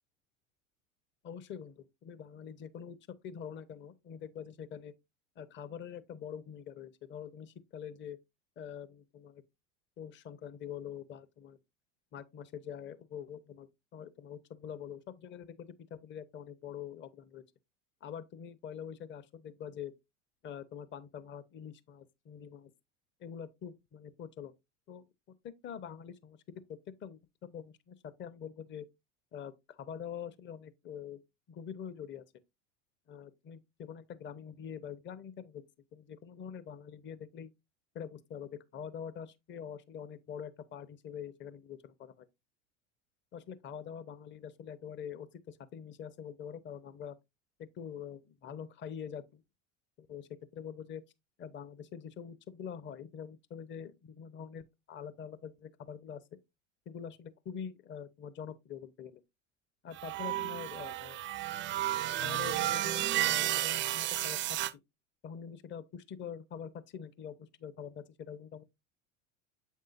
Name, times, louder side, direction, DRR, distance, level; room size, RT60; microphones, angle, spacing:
voice 1, 1.2-3.0 3.2-4.9 5.4-8.2 8.6-9.4 10.0-11.6 12.1-17.4 18.0-19.9 20.4-22.7 23.2-24.5 24.9-25.1 25.4-26.4 26.7-28.9 29.3-31.2 31.5-32.2 33.1-35.6 35.9-37.5 37.9-42.3 43.3-47.2 47.6-49.4 50.0-51.0 51.4-56.2 56.9-59.2 59.8-61.2 62.1-64.6 65.2-68.6, left 8 dB, 30° left, 0.7 m, -45 dB
sound 1, 59.9-64.7, right 14 dB, 30° right, 0.4 m, -32 dB
7.5 x 5.5 x 2.5 m
hypercardioid pair, 85°, 38 cm